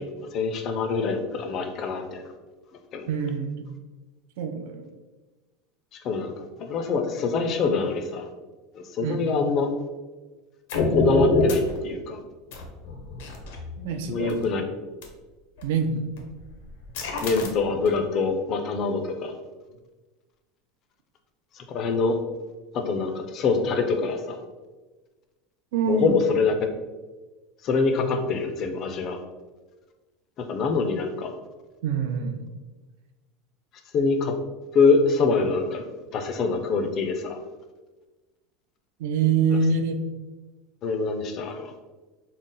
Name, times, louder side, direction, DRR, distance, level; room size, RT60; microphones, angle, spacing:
voice 1, 0.0-2.2 2.9-3.1 6.0-6.3 6.6-8.3 8.7-9.7 10.9-12.2 14.1-14.6 17.2-19.3 21.6-22.2 22.7-24.4 25.9-26.5 27.6-29.2 30.4-31.3 33.9-34.3 34.7-35.8 36.1-37.4 40.8-41.7, left 4 dB, 30° left, 6 dB, 0.4 m, -25 dB
voice 2, 3.1-3.6 4.4-4.9 9.0-9.5 13.8-14.4 15.6-16.1 25.7-26.2 31.8-32.5 39.0-40.0, right 5 dB, 70° right, 6 dB, 0.4 m, -25 dB
sound 1, 10.7-11.8 12.5-14.4 15.0-15.1 15.6-15.8 16.2-18.0, left 3 dB, 75° left, 0.6 m, -26 dB
3.9 x 2.0 x 3.7 m, 1.2 s
supercardioid pair, 180°, 0 cm